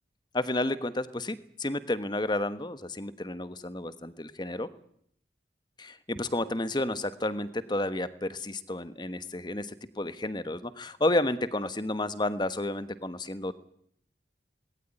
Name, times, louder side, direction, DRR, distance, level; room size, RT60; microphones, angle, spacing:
voice 1, 0.3-4.7 5.8-13.6, left 1 dB, 25° left, 13 dB, 1.2 m, -31 dB
20.0 x 18.0 x 9.8 m, 0.69 s
head